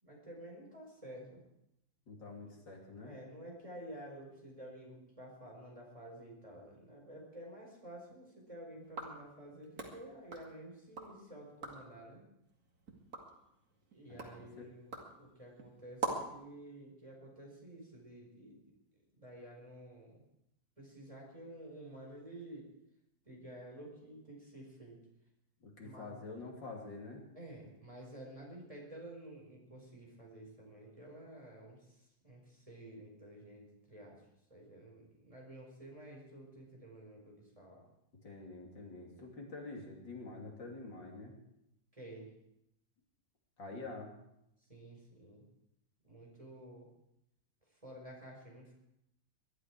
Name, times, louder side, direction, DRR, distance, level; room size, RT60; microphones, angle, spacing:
voice 1, 0.0-1.4 2.4-2.5 3.0-12.2 13.9-18.6 19.1-20.2 20.8-22.7 23.2-25.0 25.8-26.1 27.3-32.0 32.2-34.2 34.5-37.8 41.9-42.3 44.7-45.4 46.0-46.9 47.8-48.7, right 1 dB, 15° right, -1 dB, 5.1 m, -51 dB
voice 2, 2.1-3.1 14.1-14.5 25.6-27.2 38.2-41.3 43.6-44.1, left 3 dB, 80° left, 0 dB, 3.6 m, -47 dB
sound 1, 8.8-11.2 11.5-12.0 12.4-16.4, right 4 dB, 50° right, 2.7 m, -44 dB
22.0 x 12.5 x 4.8 m, 0.81 s
omnidirectional pair, 2.0 m